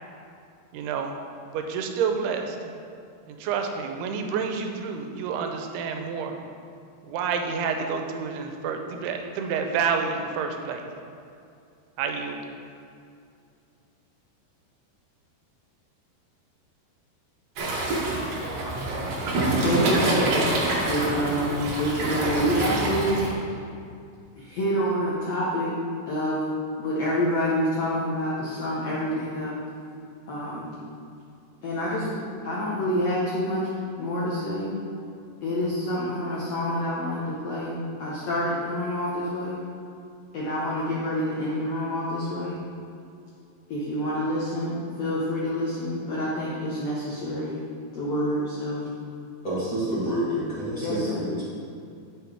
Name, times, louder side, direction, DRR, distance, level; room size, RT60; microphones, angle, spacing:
voice 1, 0.7-1.2 1.5-2.6 3.3-6.4 7.1-10.8 12.0-12.4, right 6 dB, 80° right, 4 dB, 2.6 m, -29 dB
Waves surf, 17.6-23.3, right 2 dB, 65° right, 1.7 m, -26 dB
voice 2, 19.6-20.6 20.9-23.4 24.4-25.7 26.1-26.4 26.8-29.5 30.3-30.7 31.6-32.1 32.4-33.7 34.0-34.7 35.4-39.6 40.3-42.6 43.7-47.6 47.9-48.9 50.8-51.2, equal, 75° left, -7 dB, 1.5 m, -27 dB
voice 3, 49.4-51.4, right 1 dB, 50° left, -10 dB, 0.9 m, -28 dB
11.0 x 6.3 x 3.5 m, 2.5 s
omnidirectional pair, 4.7 m